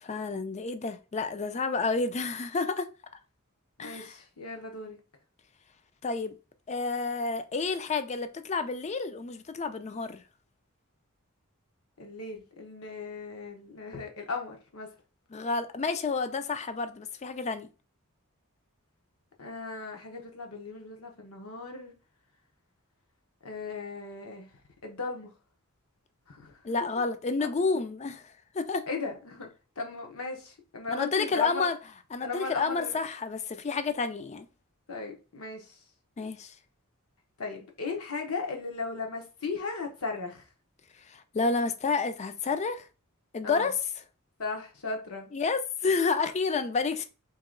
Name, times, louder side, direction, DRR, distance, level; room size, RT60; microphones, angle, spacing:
voice 1, 0.0-2.9 3.8-4.1 6.0-6.3 6.7-10.2 15.3-17.7 26.6-28.9 30.9-31.8 32.1-34.5 36.2-36.5 41.1-42.9 43.3-43.8 45.3-47.0, left 4 dB, 30° left, 0.4 m, -30 dB
voice 2, 3.8-5.0 12.0-14.9 19.4-21.9 23.4-24.5 24.8-25.3 26.3-26.6 27.4-27.7 28.9-29.5 29.8-31.7 32.2-33.0 34.9-35.8 37.4-40.5 43.4-43.7 44.4-45.3, left 4 dB, 70° left, 1.0 m, -37 dB
2.9 x 2.9 x 3.7 m
head